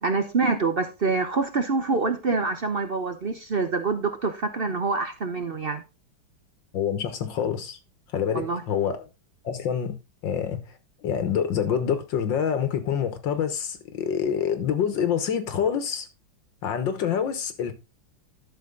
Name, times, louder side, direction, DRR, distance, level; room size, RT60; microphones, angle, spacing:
voice 1, 0.0-5.8 8.3-8.6, right 4 dB, 50° right, 0.7 m, -26 dB
voice 2, 6.7-7.8 8.1-9.1 9.4-9.9 10.2-10.8 11.0-16.1 16.6-17.7, left 8 dB, 70° left, 1.9 m, -26 dB
12.0 x 6.3 x 3.8 m
omnidirectional pair, 2.2 m